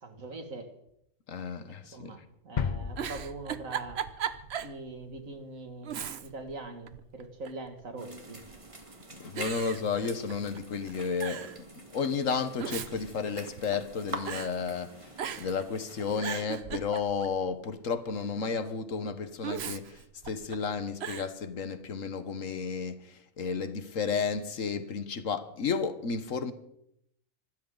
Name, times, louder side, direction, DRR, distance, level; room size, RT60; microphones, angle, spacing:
voice 1, 0.0-0.7 1.7-4.0 4.6-8.4, right 2 dB, 80° right, 2.6 m, -42 dB
voice 2, 1.3-2.1 9.2-11.5 11.7-14.9 15.4-26.5, left 5 dB, 75° left, 1.6 m, -32 dB
sound 1, 2.6-4.4 4.7-4.8, left 6 dB, 45° left, 0.7 m, -35 dB
Giggle, 2.9-4.8 5.2-5.3 5.8-6.5 6.9-7.7 8.4-8.8 9.4-10.6 10.9-11.0 11.2-11.6 12.4-13.9 14.3-14.5 15.2-15.6 16.0-17.4 19.4-20.6 21.0-21.3, right 8 dB, 55° right, 1.0 m, -37 dB
sound 2, 8.0-16.2, right 1 dB, 25° right, 2.0 m, -45 dB
25.5 x 13.5 x 4.0 m
omnidirectional pair, 1.4 m